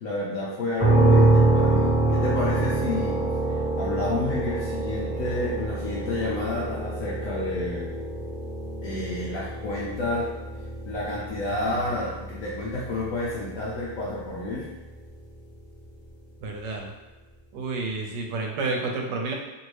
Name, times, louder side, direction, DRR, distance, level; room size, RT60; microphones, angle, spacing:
voice 1, 0.0-3.2 3.8-7.9 8.8-10.3 10.8-14.7, left 2 dB, 70° left, -5 dB, 0.8 m, -30 dB
sound 1, 0.8-14.5, right 2 dB, 20° left, 1.1 m, -25 dB
voice 2, 16.4-16.9 17.5-19.3, right 3 dB, 80° right, 1 dB, 1.2 m, -30 dB
2.9 x 2.6 x 3.1 m, 1.1 s
omnidirectional pair, 1.9 m